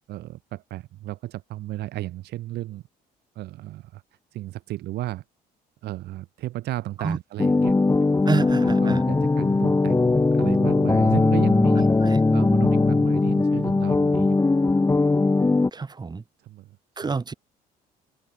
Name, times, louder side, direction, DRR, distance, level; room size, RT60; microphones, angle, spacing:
voice 1, 0.1-2.8 3.3-4.0 4.3-5.2 5.8-7.7 8.2-14.4 16.4-16.8 17.0-17.2, right 15 dB, 75° right, 5.1 m, -34 dB
sound 1, 7.4-15.7, left 3 dB, 15° left, 2.3 m, -20 dB
voice 2, 8.3-9.0 12.0-12.2 15.7-16.2 17.0-17.3, right 4 dB, 25° right, 4.1 m, -28 dB
cardioid pair, 110°, 17 cm